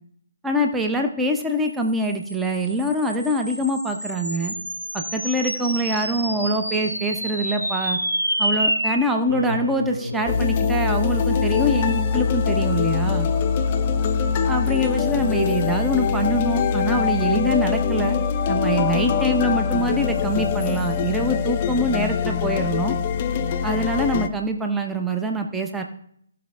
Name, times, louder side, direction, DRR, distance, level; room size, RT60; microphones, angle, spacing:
voice 1, 0.4-4.5 4.9-8.0 8.4-13.3 14.5-18.2 18.5-23.0 23.6-25.8, right 1 dB, 5° right, 3 dB, 0.9 m, -24 dB
sound 1, 1.8-12.5, equal, 90° right, 1.6 m, -29 dB
sound 2, 10.3-24.3, left 6 dB, 30° left, 0.7 m, -23 dB
16.0 x 5.7 x 3.8 m, 0.67 s
figure-of-eight pair, 140°, 0 cm